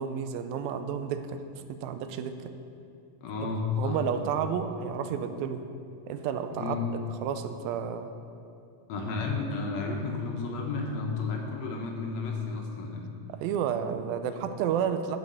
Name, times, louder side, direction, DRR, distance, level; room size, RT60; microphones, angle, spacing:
voice 1, 0.0-1.4 1.7-2.5 3.4-5.6 6.1-6.8 7.2-8.1 13.3-15.2, right 8 dB, 90° right, 9 dB, 2.4 m, -31 dB
voice 2, 3.2-4.3 6.6-6.9 8.9-13.1, left 4 dB, 70° left, 1 dB, 1.7 m, -32 dB
10.5 x 5.7 x 7.4 m, 2.5 s
omnidirectional pair, 4.1 m